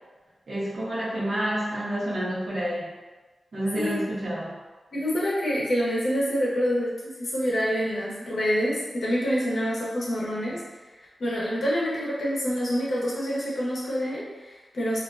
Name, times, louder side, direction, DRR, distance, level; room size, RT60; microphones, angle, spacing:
voice 1, 0.5-2.9 3.5-4.6, right 1 dB, 70° right, -7 dB, 0.8 m, -29 dB
voice 2, 4.9-10.6 11.2-15.0, equal, 75° left, -6 dB, 0.7 m, -27 dB
2.4 x 2.2 x 2.4 m, 1.3 s
cardioid pair, 50°, 0 cm